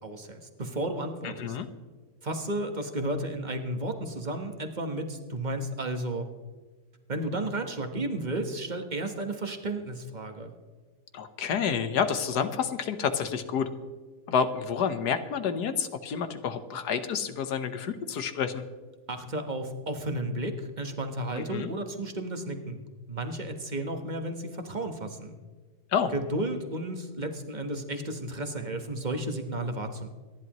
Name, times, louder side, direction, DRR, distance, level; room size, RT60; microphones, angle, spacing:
voice 1, 0.0-1.6 2.2-6.3 7.1-10.5 19.1-22.8 23.1-25.3 26.1-30.1, right 1 dB, 30° right, 6 dB, 1.3 m, -33 dB
voice 2, 1.2-1.7 11.1-13.7 14.3-18.6 21.3-21.7 25.9-26.1, left 7 dB, 80° left, 9 dB, 1.6 m, -29 dB
26.0 x 11.0 x 3.0 m, 1.4 s
omnidirectional pair, 1.7 m